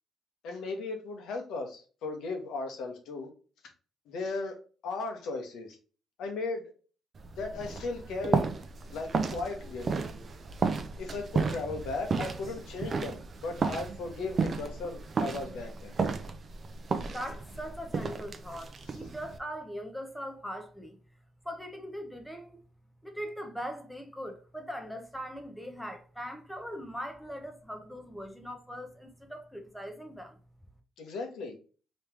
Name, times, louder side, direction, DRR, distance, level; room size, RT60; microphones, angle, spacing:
voice 1, 0.4-3.3 4.1-4.6 4.8-5.8 6.2-6.6 7.3-8.5 8.9-9.9 11.0-15.9 31.0-31.5, left 3 dB, 80° left, 1.1 m, -36 dB
sound 1, 7.2-19.4, right 4 dB, 45° right, 0.5 m, -33 dB
voice 2, 17.0-21.0 21.4-22.6 23.0-30.4, equal, ahead, 0.9 m, -40 dB
3.2 x 3.0 x 3.4 m
cardioid pair, 90°, 0 cm